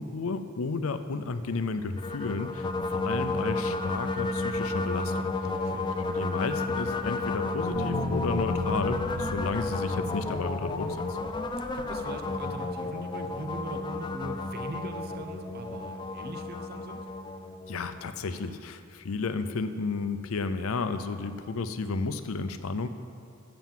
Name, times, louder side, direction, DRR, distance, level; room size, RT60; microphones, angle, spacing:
voice 1, 0.0-5.3 6.1-11.2 17.7-22.9, left 4 dB, 90° left, 10 dB, 0.5 m, -32 dB
sound 1, 1.6-3.2 3.4-4.7 5.5-6.6 6.9-7.6, left 1 dB, 5° right, 1.2 m, -52 dB
sound 2, 2.0-18.2, left 2 dB, 20° left, 0.4 m, -32 dB
voice 2, 5.4-6.0 11.7-17.1 19.4-19.5, right 1 dB, 50° right, 7 dB, 0.7 m, -41 dB
sound 3, 7.7-11.8, left 2 dB, 80° right, 2.7 m, -36 dB
7.6 x 6.9 x 7.3 m, 2.4 s
head